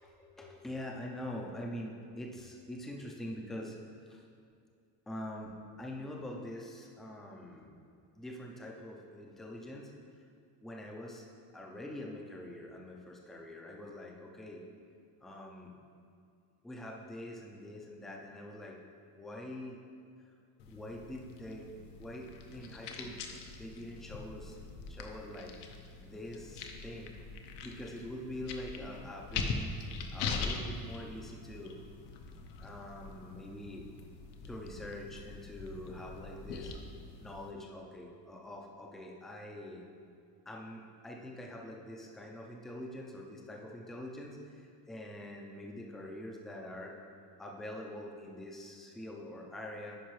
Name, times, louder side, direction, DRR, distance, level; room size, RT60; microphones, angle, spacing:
voice 1, 0.0-3.8 4.1-4.2 5.1-7.8 8.1-9.9 10.6-11.2 11.5-14.6 15.2-15.7 16.6-18.8 19.1-19.8 20.7-23.1 23.6-24.5 24.9-25.5 26.0-27.2 27.6-29.7 30.1-31.8 32.6-33.9 34.5-36.7 37.2-39.8 40.5-47.0 47.4-50.0, left 1 dB, ahead, -1 dB, 0.3 m, -44 dB
sound 1, 20.6-37.5, left 4 dB, 90° left, 0.8 m, -42 dB
10.0 x 4.9 x 3.1 m, 2.3 s
cardioid pair, 160°, 40 cm